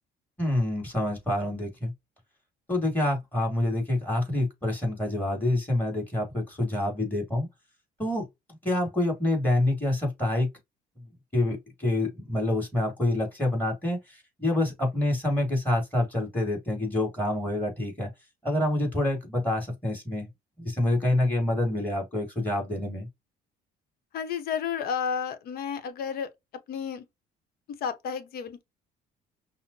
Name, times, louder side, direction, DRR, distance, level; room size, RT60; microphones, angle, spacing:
voice 1, 0.4-1.9 2.7-7.5 8.0-8.3 8.6-10.5 11.0-11.1 11.3-18.1 18.4-20.3 20.6-23.1, left 1 dB, 10° left, 2.6 m, -27 dB
voice 2, 24.1-26.3 26.7-27.0 27.8-28.6, left 7 dB, 65° left, 0.9 m, -31 dB
5.6 x 2.1 x 2.8 m
cardioid pair, 110°, 17 cm